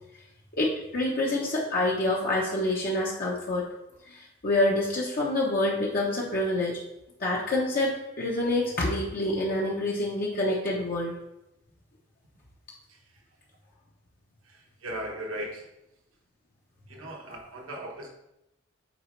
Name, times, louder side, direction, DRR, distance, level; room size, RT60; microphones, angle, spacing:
voice 1, 0.5-3.7 4.1-6.8 7.2-11.1, left 1 dB, 45° left, -4 dB, 0.9 m, -27 dB
voice 2, 14.4-15.7 16.9-18.1, right 1 dB, 80° right, 0 dB, 1.3 m, -38 dB
7.9 x 4.2 x 3.2 m, 0.89 s
head